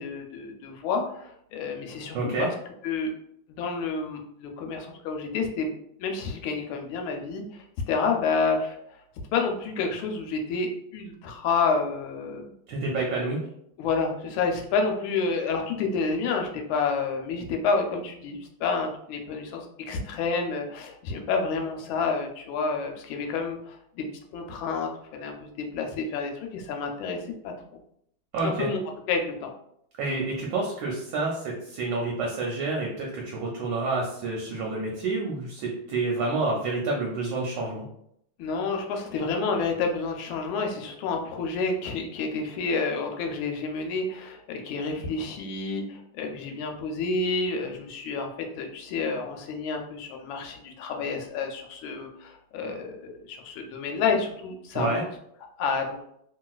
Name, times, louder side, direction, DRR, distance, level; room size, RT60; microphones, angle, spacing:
voice 1, 0.0-2.5 2.8-3.1 3.5-5.7 6.0-9.0 9.3-12.5 13.8-24.0 24.3-27.5 28.4-28.8 29.1-29.5 38.4-48.3 48.6-55.0 55.6-56.0, left 4 dB, 80° left, 3 dB, 1.3 m, -29 dB
voice 2, 2.1-2.5 12.7-13.4 28.3-28.7 30.0-37.8 54.7-55.0, right 3 dB, 70° right, -2 dB, 1.2 m, -28 dB
2.9 x 2.7 x 2.3 m, 0.73 s
omnidirectional pair, 2.2 m